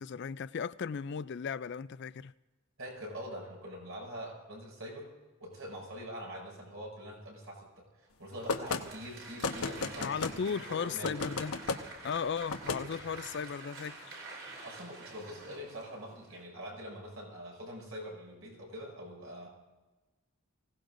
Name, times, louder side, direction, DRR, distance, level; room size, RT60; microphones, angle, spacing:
voice 1, 0.0-2.3 10.0-11.6 12.0-14.1, left 6 dB, 50° left, 0.4 m, -36 dB
voice 2, 2.8-5.1 5.4-11.3 14.4-19.5, equal, 75° right, 6.3 m, -44 dB
Applause, 8.3-16.4, right 3 dB, 60° right, 4.0 m, -48 dB
sound 1, 8.5-8.8 9.4-10.4 11.0-11.8 12.5-12.8, left 4 dB, 80° left, 1.1 m, -33 dB
25.0 x 17.5 x 2.6 m
head